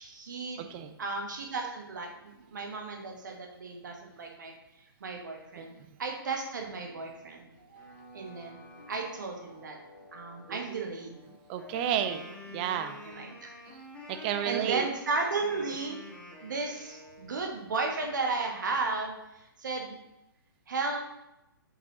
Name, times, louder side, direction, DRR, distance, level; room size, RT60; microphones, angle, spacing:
voice 1, 0.0-0.7 1.0-4.5 5.0-9.8 10.1-11.2 13.0-13.5 14.2-16.0 16.4-20.0 20.7-21.0, right 3 dB, 55° right, 2 dB, 1.2 m, -34 dB
voice 2, 0.6-0.9 5.6-5.7 10.5-10.8 11.5-13.0 14.1-14.9, right 9 dB, 25° right, 8 dB, 0.5 m, -32 dB
sound 1, 7.1-12.3, left 1 dB, 55° left, 1.9 m, -54 dB
Wind instrument woodwind instrument, 11.5-17.4, left 2 dB, 10° left, 1.0 m, -48 dB
7.5 x 5.3 x 3.0 m, 0.90 s
figure-of-eight pair, 125°, 12 cm